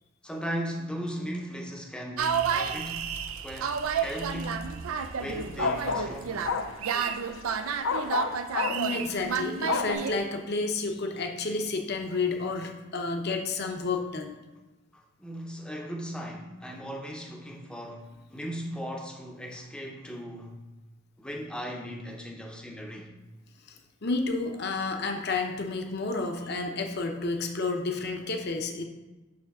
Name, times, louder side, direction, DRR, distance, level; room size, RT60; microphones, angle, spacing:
voice 1, 0.2-4.8 5.1-6.5 15.2-20.6 21.2-23.1, equal, 5° left, 0.7 m, -37 dB
sound 1, 2.2-10.2, right 6 dB, 85° right, 0.4 m, -31 dB
sound 2, 4.1-4.4 5.6-7.6 7.8-9.9, left 5 dB, 70° left, 0.5 m, -30 dB
voice 2, 8.7-14.4 24.0-28.8, left 3 dB, 50° left, 0.8 m, -30 dB
6.2 x 3.3 x 6.0 m
head